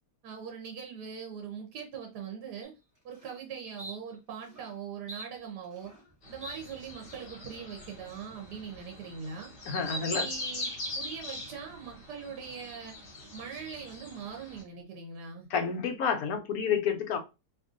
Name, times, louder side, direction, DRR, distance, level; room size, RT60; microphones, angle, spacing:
voice 1, 0.2-2.7 3.0-5.9 6.3-9.5 9.9-12.9 13.3-15.5, right 6 dB, 80° right, 1.3 m, -41 dB
sound 1, 2.6-2.7 3.1-3.4 3.8-3.9 4.4-4.7 5.1-6.1 6.4-6.6 7.1-7.4, right 1 dB, 10° right, 1.3 m, -45 dB
sound 2, 6.2-14.6, left 1 dB, 45° left, 1.1 m, -41 dB
voice 2, 9.7-10.3 15.5-17.2, left 6 dB, 70° left, 1.0 m, -29 dB
3.0 x 2.6 x 2.4 m
omnidirectional pair, 1.7 m